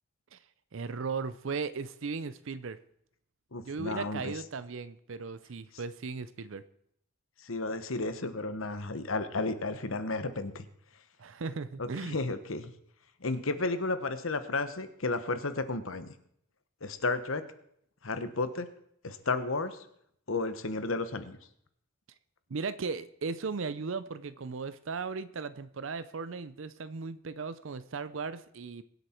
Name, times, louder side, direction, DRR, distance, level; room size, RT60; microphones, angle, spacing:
voice 1, 0.7-2.8 3.6-6.6 11.2-12.2 22.5-28.8, right 4 dB, 65° right, 14 dB, 0.6 m, -37 dB
voice 2, 3.5-4.3 7.4-10.6 11.8-12.7 13.2-16.1 16.8-17.4 18.0-18.7 19.0-19.8 20.3-21.4, left 3 dB, 70° left, 11 dB, 1.2 m, -33 dB
22.5 x 8.2 x 4.5 m, 0.70 s
head